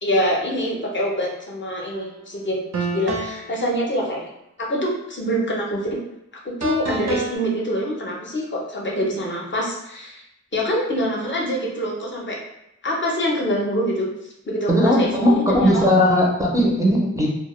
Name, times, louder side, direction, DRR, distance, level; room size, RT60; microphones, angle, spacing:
voice 1, 0.0-2.6 2.9-4.3 4.6-5.8 6.4-10.2 10.5-12.4 12.8-14.1 14.5-15.9, equal, 40° left, -2 dB, 0.5 m, -25 dB
sound 1, 1.9-2.1 2.7-3.5 6.6-7.3, right 3 dB, 65° right, 0.5 m, -27 dB
voice 2, 14.7-17.3, left 1 dB, 10° right, -5 dB, 0.4 m, -18 dB
2.1 x 2.0 x 3.0 m, 0.83 s
wide cardioid pair, 90°, 29 cm